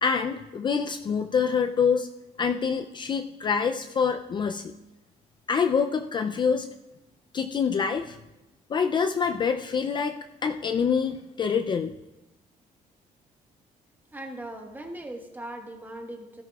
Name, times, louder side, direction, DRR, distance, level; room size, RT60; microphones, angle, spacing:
voice 1, 0.0-2.1 2.4-4.7 5.5-6.7 7.3-8.2 8.7-11.9, left 6 dB, 35° left, 7 dB, 0.4 m, -26 dB
voice 2, 14.1-16.4, right 1 dB, 15° right, 3 dB, 1.4 m, -39 dB
16.5 x 13.0 x 2.4 m, 1.0 s
cardioid pair, 135°, 14 cm